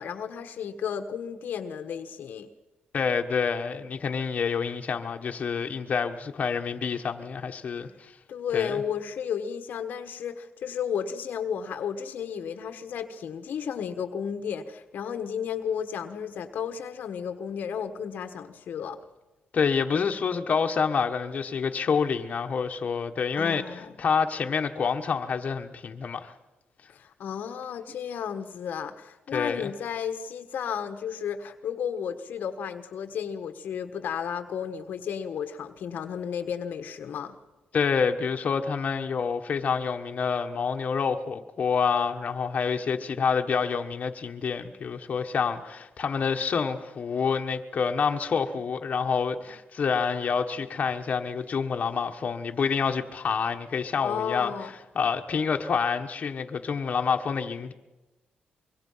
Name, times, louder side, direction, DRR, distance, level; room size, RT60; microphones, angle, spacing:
voice 1, 0.0-2.5 8.3-19.0 23.4-23.9 26.9-37.4 54.0-54.7, left 7 dB, 75° left, 1.3 m, -33 dB
voice 2, 2.9-8.1 8.5-8.8 19.5-26.3 29.3-29.7 37.7-54.5 54.9-57.7, left 6 dB, 50° left, 1.4 m, -27 dB
25.0 x 23.0 x 5.7 m
cardioid pair, 100°, 3 cm